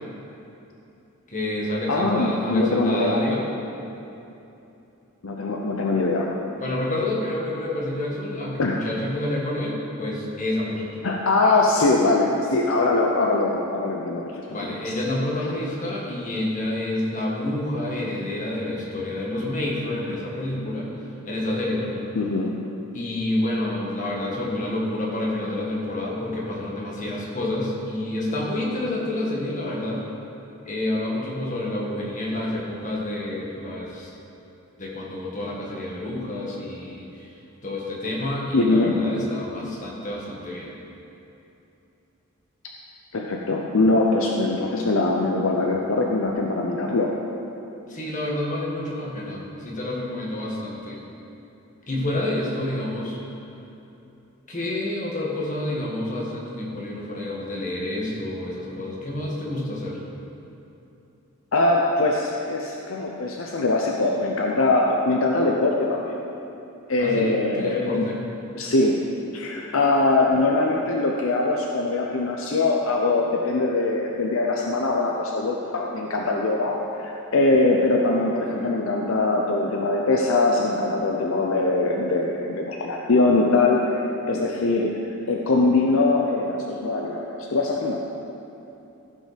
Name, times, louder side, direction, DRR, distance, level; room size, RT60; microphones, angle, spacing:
voice 1, 1.3-3.5 6.6-10.9 14.5-20.9 21.2-22.1 22.9-30.0 30.6-34.1 34.8-37.3 37.6-40.7 47.9-51.0 51.9-53.2 54.5-60.0 67.0-68.2, left 1 dB, 35° left, -4 dB, 1.7 m, -28 dB
voice 2, 1.9-3.2 5.2-6.3 8.6-8.8 11.0-14.9 22.1-22.6 38.5-39.0 43.1-47.2 61.5-66.2 66.9-68.1 68.5-69.0 69.3-85.0 85.3-88.0, left 2 dB, 65° left, 0 dB, 0.7 m, -22 dB
15.0 x 5.4 x 5.1 m, 2.9 s
head